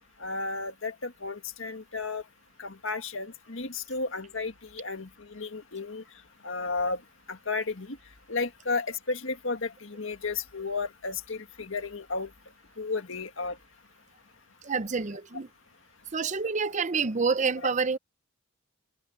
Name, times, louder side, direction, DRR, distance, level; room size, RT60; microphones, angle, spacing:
voice 1, 0.2-2.2 2.6-6.0 6.4-7.0 7.3-8.0 8.3-12.3 12.8-13.6, left 4 dB, 65° left, 1.8 m, -33 dB
voice 2, 14.6-15.5 16.1-18.0, right 5 dB, 35° right, 0.7 m, -28 dB
head